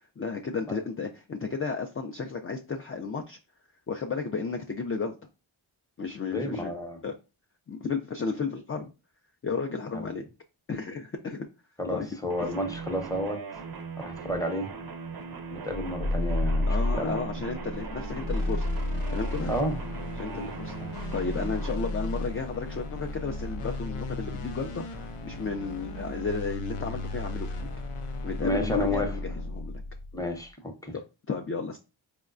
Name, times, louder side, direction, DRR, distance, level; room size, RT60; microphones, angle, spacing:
voice 1, 0.2-3.4 3.9-5.2 6.0-6.7 7.0-7.1 7.7-8.9 9.4-10.2 10.7-11.5 11.9-12.1 16.7-18.7 19.1-19.5 20.2-20.7 21.1-27.7 28.2-29.8 30.9-31.0 31.3-31.8, left 4 dB, 30° left, 0.3 m, -33 dB
voice 2, 6.3-7.0 9.9-10.1 11.8-13.4 14.0-14.7 15.5-17.2 19.5-19.8 20.3-20.5 20.8-20.9 28.4-29.1 30.1-31.0, left 1 dB, 5° left, 0.7 m, -31 dB
sound 1, 12.3-21.7, right 5 dB, 50° right, 0.5 m, -40 dB
sound 2, 15.7-30.3, left 2 dB, 85° left, 0.6 m, -33 dB
4.6 x 2.1 x 2.4 m
cardioid pair, 45°, 50 cm